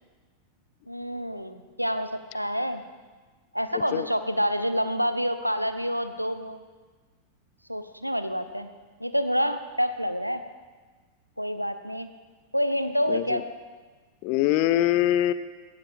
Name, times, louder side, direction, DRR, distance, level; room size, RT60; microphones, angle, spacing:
voice 1, 0.9-2.8 3.5-6.6 7.7-8.7 9.0-10.4 11.4-12.1 12.5-13.4, equal, 90° right, 10 dB, 0.9 m, -27 dB
voice 2, 3.7-4.1 13.1-13.4 14.2-15.3, left 13 dB, 45° left, 15 dB, 0.7 m, -23 dB
18.0 x 16.5 x 3.7 m, 1.4 s
figure-of-eight pair, 90°, 0 cm